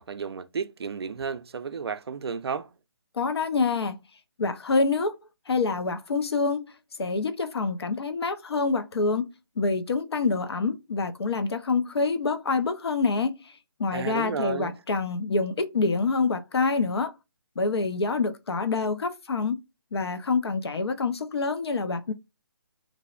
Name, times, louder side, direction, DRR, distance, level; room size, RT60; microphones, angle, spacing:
voice 1, 0.0-2.7 13.9-14.7, right 6 dB, 80° right, 0.4 m, -32 dB
voice 2, 3.1-4.0 4.4-5.2 5.5-6.6 7.0-9.3 9.6-17.1 17.6-19.6 19.9-22.1, left 4 dB, 85° left, 0.6 m, -26 dB
2.6 x 2.1 x 2.4 m
hypercardioid pair, 160°, 13 cm